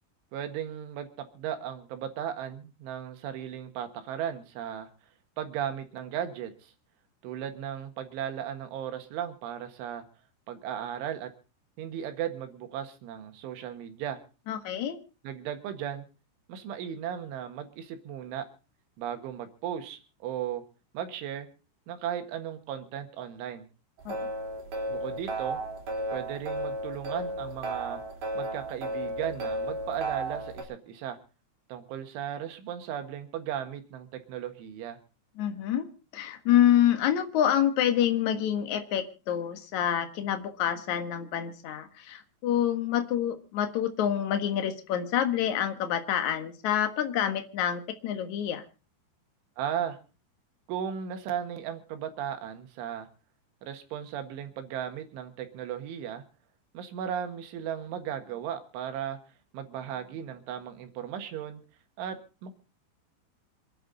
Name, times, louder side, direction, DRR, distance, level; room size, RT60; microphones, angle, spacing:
voice 1, 0.3-4.9 5.4-6.7 7.2-10.0 10.5-11.3 11.8-14.2 15.2-16.1 16.5-18.5 19.0-20.6 20.9-21.5 21.9-23.7 24.9-25.6 26.1-28.0 28.4-31.2 31.7-35.0 49.6-50.0 50.7-53.1 53.6-56.2 56.7-59.2 59.5-61.6 62.0-62.6, right 9 dB, 90° right, 7 dB, 4.1 m, -36 dB
voice 2, 14.5-15.0 24.1-24.3 35.4-35.9 36.1-48.6, left 10 dB, 60° left, 7 dB, 2.1 m, -27 dB
sound 1, 24.0-30.6, right 1 dB, 45° right, 5.4 m, -34 dB
27.0 x 10.0 x 4.0 m, 0.33 s
omnidirectional pair, 5.4 m